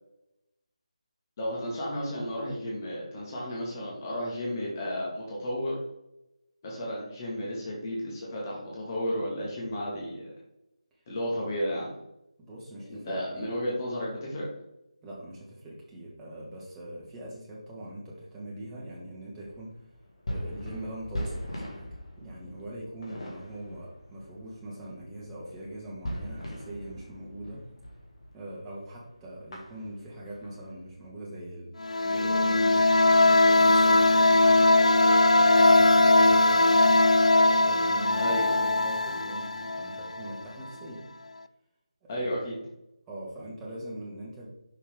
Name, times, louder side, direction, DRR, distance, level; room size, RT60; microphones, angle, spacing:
voice 1, 1.4-5.8 6.6-10.3 11.1-12.0 12.9-14.5 38.2-38.5 42.1-42.5, equal, 30° left, -5 dB, 2.1 m, -33 dB
voice 2, 12.4-13.5 15.0-19.8 20.3-21.9 22.2-27.6 28.3-31.7 32.0-34.6 35.2-36.8 37.4-41.1 42.0-42.7 43.1-44.5, right 1 dB, 10° right, -6 dB, 1.6 m, -42 dB
sound 1, 19.5-28.4 28.7-28.9 29.2-31.1, equal, 55° left, 2.1 m, -40 dB
sound 2, 31.8-40.4, left 2 dB, 80° left, 0.4 m, -20 dB
6.3 x 5.5 x 3.7 m, 0.87 s
figure-of-eight pair, 160°, 4 cm